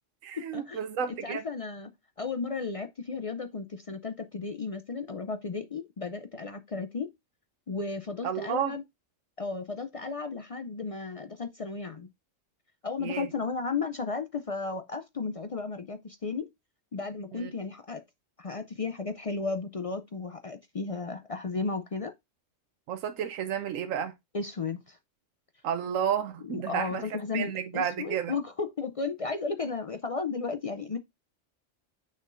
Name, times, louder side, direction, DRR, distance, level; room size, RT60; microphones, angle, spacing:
voice 1, 0.2-1.4 8.2-8.8 13.0-13.3 17.3-17.5 22.9-24.1 25.6-28.4, right 8 dB, 85° right, 1.1 m, -31 dB
voice 2, 1.1-1.9 2.2-7.1 7.7-8.8 9.4-12.1 12.8-16.5 16.9-18.0 18.4-22.1 24.3-25.0 26.4-31.0, left 4 dB, 60° left, 0.3 m, -34 dB
6.6 x 6.3 x 2.5 m
omnidirectional pair, 1.3 m